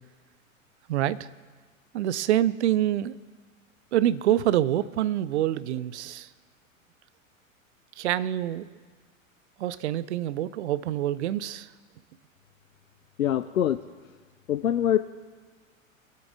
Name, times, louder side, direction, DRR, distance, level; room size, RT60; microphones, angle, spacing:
voice 1, 0.9-1.3 1.9-3.1 3.9-6.3 8.0-8.7 9.6-11.7, right 12 dB, 55° right, 18 dB, 0.5 m, -26 dB
voice 2, 13.2-13.8 14.5-15.0, left 10 dB, 75° left, 11 dB, 0.5 m, -23 dB
22.0 x 8.3 x 3.7 m, 1.4 s
figure-of-eight pair, 95°, 41 cm